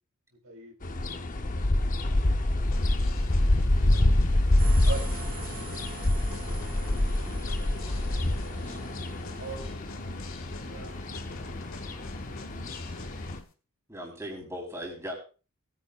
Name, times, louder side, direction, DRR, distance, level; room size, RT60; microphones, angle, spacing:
voice 1, 0.4-1.3 4.8-5.1 9.4-10.2 10.6-10.9, right 4 dB, 65° right, 1 dB, 3.3 m, -41 dB
sound 1, 0.8-13.4, left 1 dB, 35° left, 0.8 m, -27 dB
sound 2, 2.7-13.4, left 2 dB, 60° left, 1.8 m, -45 dB
voice 2, 3.7-4.1 6.6-8.8, equal, 10° left, -1 dB, 4.3 m, -51 dB
sound 3, 4.6-9.7, right 2 dB, 40° right, 3.2 m, -43 dB
voice 3, 13.9-15.2, equal, 15° right, 0 dB, 3.9 m, -38 dB
20.0 x 9.8 x 2.4 m, 0.34 s
head